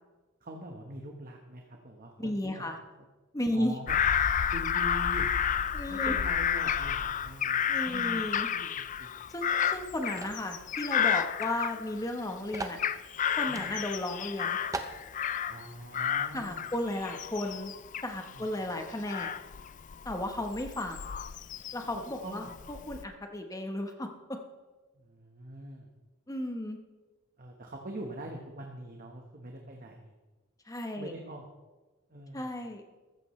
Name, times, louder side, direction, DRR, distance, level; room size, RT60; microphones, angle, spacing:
voice 1, 0.4-2.6 3.5-4.0 4.5-5.3 5.9-8.2 8.5-9.2 13.5-13.7 15.5-16.7 18.3-18.5 22.2-22.5 24.9-25.9 27.4-30.1 31.0-31.5 32.1-32.5, right 1 dB, 45° right, 1 dB, 1.2 m, -43 dB
voice 2, 2.2-2.8 3.3-3.8 5.7-6.2 7.7-8.5 9.3-12.8 13.4-14.6 16.3-17.7 18.0-19.3 20.0-21.1 21.7-24.1 26.3-26.8 30.7-31.1 32.3-32.8, left 1 dB, 15° left, 4 dB, 1.0 m, -34 dB
Bird vocalization bird call bird song / Crow, 3.9-12.2 12.5-15.7 15.9-22.0 22.5-23.0, left 8 dB, 35° left, 0.4 m, -31 dB
sound 1, 10.2-10.5 11.4-11.5 11.8-11.9 12.5-12.8 13.5-13.7 14.2-14.3 14.7-15.0, right 2 dB, 15° right, 0.7 m, -38 dB
14.5 x 14.0 x 3.2 m, 1.2 s
head